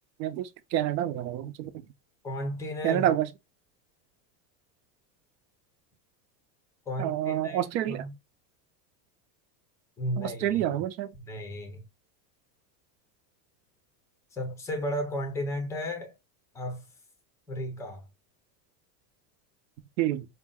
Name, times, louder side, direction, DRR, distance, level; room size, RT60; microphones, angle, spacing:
voice 1, 0.2-1.7 2.8-3.3 7.0-8.0 10.2-11.1 20.0-20.3, right 12 dB, 85° right, 0.9 m, -28 dB
voice 2, 2.2-3.0 6.9-8.1 10.0-10.8 11.2-11.9 14.3-16.1 16.5-16.8 17.5-18.1, equal, 5° left, 0.4 m, -34 dB
5.2 x 2.2 x 3.6 m
supercardioid pair, 165°, 49 cm